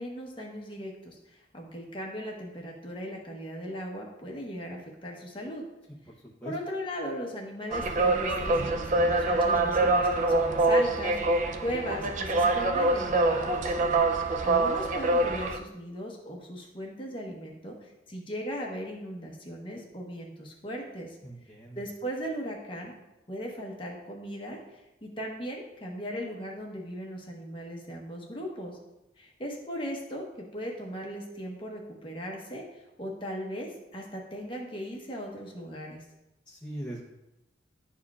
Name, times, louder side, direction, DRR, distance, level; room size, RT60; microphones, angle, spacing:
voice 1, 0.0-5.6 6.4-21.2 21.7-22.9 23.3-28.8 29.2-36.0, equal, 30° left, -1 dB, 1.0 m, -38 dB
sound 1, 7.7-15.6, right 2 dB, 40° right, 0.4 m, -25 dB
voice 2, 21.2-21.8 36.5-37.0, right 1 dB, 5° left, -6 dB, 0.7 m, -40 dB
11.0 x 4.3 x 2.4 m, 0.95 s
head